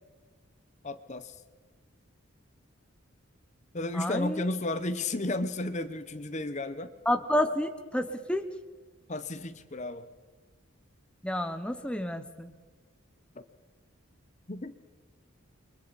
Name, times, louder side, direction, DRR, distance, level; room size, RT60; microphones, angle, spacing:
voice 1, 0.8-1.3 3.7-6.9 9.1-10.1 13.4-13.5 14.5-14.8, left 2 dB, 35° left, 11 dB, 0.8 m, -33 dB
voice 2, 3.9-4.4 7.1-8.5 11.2-12.5, left 1 dB, 5° left, 7 dB, 0.8 m, -30 dB
29.0 x 23.0 x 4.1 m, 1.4 s
head